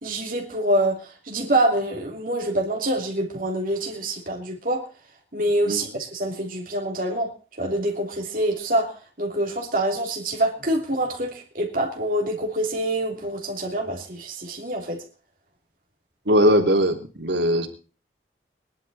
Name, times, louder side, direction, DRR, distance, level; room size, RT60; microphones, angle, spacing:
voice 1, 0.0-4.9 5.3-15.0, right 1 dB, 50° right, 3.1 m, -26 dB
voice 2, 16.3-17.7, equal, 75° right, 3.3 m, -20 dB
22.5 x 11.5 x 4.2 m
head